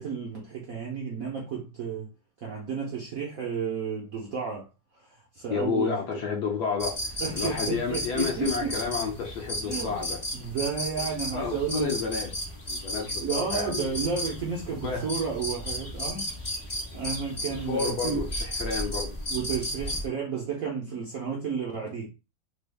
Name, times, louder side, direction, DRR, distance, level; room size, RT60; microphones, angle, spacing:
voice 1, 0.0-2.1 2.4-4.7 4.9-6.0 7.2-8.8 9.6-10.1 10.3-12.0 12.9-13.0 13.2-16.3 16.9-18.3 19.3-22.1, right 6 dB, 65° right, 0.8 m, -32 dB
voice 2, 5.5-10.2 11.3-12.3 12.7-13.9 14.8-15.1 17.7-19.2, left 5 dB, 65° left, 1.1 m, -31 dB
sound 1, 6.8-20.1, equal, 40° left, 0.4 m, -34 dB
3.3 x 2.3 x 3.3 m
omnidirectional pair, 2.2 m